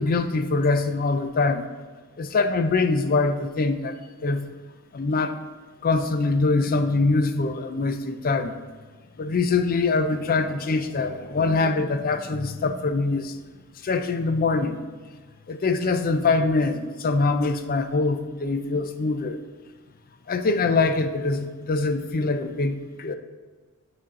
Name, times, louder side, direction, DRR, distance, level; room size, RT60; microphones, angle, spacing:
voice 1, 0.0-1.6 2.2-3.9 4.2-4.5 4.9-5.4 5.8-8.6 9.2-13.3 13.8-14.8 15.5-19.4 20.3-23.1, left 3 dB, 40° left, 8 dB, 0.4 m, -23 dB
8.9 x 4.3 x 3.7 m, 1.4 s
head